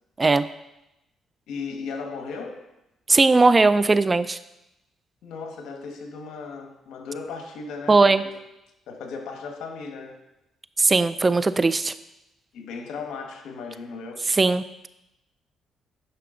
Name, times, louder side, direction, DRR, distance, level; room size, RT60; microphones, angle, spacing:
voice 1, 1.5-2.7 5.2-8.5 8.9-10.2 12.5-14.3, left 4 dB, 80° left, 4 dB, 1.3 m, -36 dB
voice 2, 3.1-4.4 7.9-8.2 10.8-11.9 14.4-14.9, right 3 dB, 25° right, 14 dB, 0.4 m, -19 dB
10.5 x 5.9 x 3.8 m, 0.90 s
cardioid pair, 90°, 0 cm